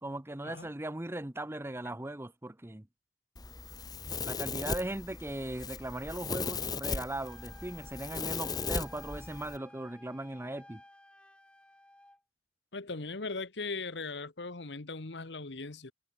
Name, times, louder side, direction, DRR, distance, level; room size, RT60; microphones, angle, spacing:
voice 1, 0.0-2.9 4.2-10.8, right 1 dB, 15° right, 0.8 m, -38 dB
Domestic sounds home sounds, 3.4-9.6, left 4 dB, 25° left, 1.0 m, -37 dB
Wind instrument woodwind instrument, 7.2-12.2, left 1 dB, 5° left, 1.8 m, -56 dB
voice 2, 12.7-15.9, left 3 dB, 85° left, 1.5 m, -39 dB
head